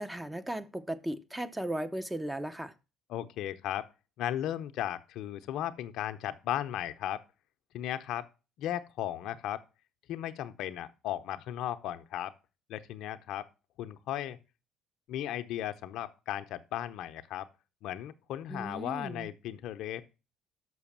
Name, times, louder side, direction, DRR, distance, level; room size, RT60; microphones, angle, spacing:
voice 1, 0.0-2.7 18.5-19.3, right 1 dB, 10° right, 0.8 m, -36 dB
voice 2, 3.1-3.9 4.2-7.2 7.7-8.3 8.6-9.6 10.1-12.3 12.7-13.5 13.8-14.4 15.1-17.5 17.8-20.1, left 12 dB, 70° left, 0.7 m, -36 dB
6.4 x 6.1 x 7.2 m
supercardioid pair, 85°, 0 cm